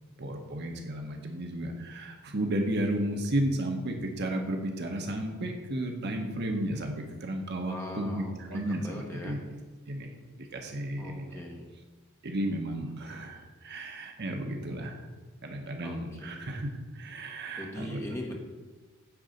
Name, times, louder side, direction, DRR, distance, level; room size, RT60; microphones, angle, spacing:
voice 1, 0.2-9.4 9.9-10.1 10.4-11.4 12.2-15.0 15.4-16.7 16.9-18.0, right 1 dB, 50° right, 3 dB, 1.0 m, -33 dB
voice 2, 7.6-9.4 11.0-11.6 15.8-16.4 17.6-18.4, left 1 dB, 10° left, -1 dB, 1.3 m, -40 dB
9.6 x 4.0 x 6.6 m, 1.3 s
head